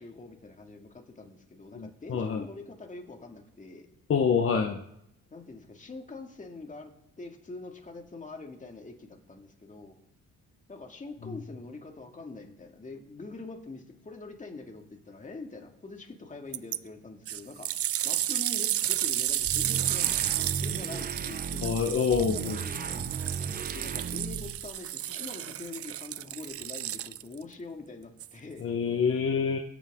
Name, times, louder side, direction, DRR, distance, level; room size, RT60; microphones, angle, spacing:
voice 1, 0.0-3.9 5.3-6.9 7.2-10.0 10.7-17.7 18.0-21.8 22.1-22.8 23.7-28.7, left 3 dB, 25° left, 3 dB, 2.3 m, -44 dB
voice 2, 1.7-2.4 4.1-4.8 21.6-22.6 28.6-29.6, left 6 dB, 45° left, 3 dB, 1.2 m, -26 dB
sound 1, 16.5-16.8 17.3-27.4 28.2-28.3, right 12 dB, 50° right, 0.4 m, -32 dB
sound 2, 19.3-24.8, right 5 dB, 30° right, 1.1 m, -36 dB
23.0 x 8.4 x 3.8 m, 0.77 s
cardioid pair, 90°, 30 cm